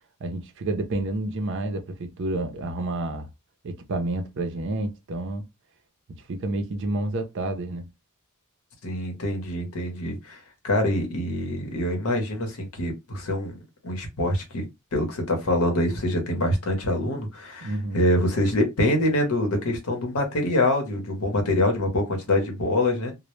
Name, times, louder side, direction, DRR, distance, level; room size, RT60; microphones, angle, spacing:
voice 1, 0.2-3.3 3.6-5.4 6.1-7.9 17.6-18.0, right 2 dB, 60° right, 0.5 m, -29 dB
voice 2, 8.8-13.6 13.8-14.6 14.9-23.1, left 1 dB, 90° left, 0.8 m, -25 dB
2.1 x 2.1 x 3.0 m
head